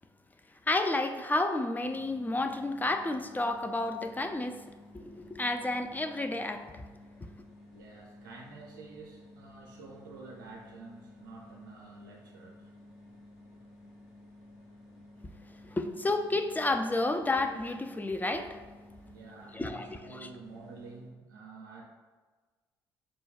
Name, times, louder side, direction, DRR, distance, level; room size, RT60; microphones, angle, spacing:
voice 1, 0.7-4.6 4.9-6.6 15.7-18.6 19.5-20.3, left 2 dB, 15° left, 7 dB, 0.4 m, -31 dB
sound 1, 1.8-21.1, left 1 dB, 75° left, 1.4 m, -54 dB
voice 2, 7.7-12.7 19.1-21.8, right 3 dB, 90° right, -2 dB, 0.5 m, -49 dB
5.0 x 2.3 x 3.5 m, 1.3 s
hypercardioid pair, 50°, 11 cm